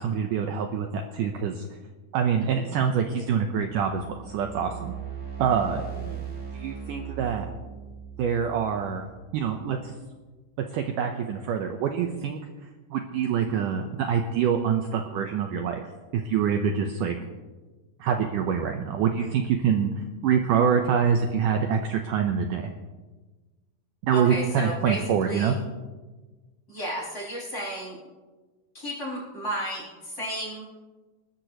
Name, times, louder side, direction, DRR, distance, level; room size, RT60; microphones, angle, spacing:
voice 1, 0.0-1.6 2.1-4.9 5.4-5.9 6.5-7.5 8.2-9.1 9.3-9.9 10.7-12.4 12.9-15.8 16.1-17.2 18.0-19.9 20.2-22.7 24.0-25.6, right 7 dB, 75° right, 4 dB, 2.0 m, -25 dB
voice 2, 2.4-2.7 5.9-6.3 24.1-25.6 26.7-28.0 28.7-30.7, equal, 20° left, -6 dB, 6.1 m, -33 dB
sound 1, 3.6-9.8, right 7 dB, 20° right, 1.5 m, -39 dB
27.5 x 13.0 x 3.1 m, 1.3 s
omnidirectional pair, 4.6 m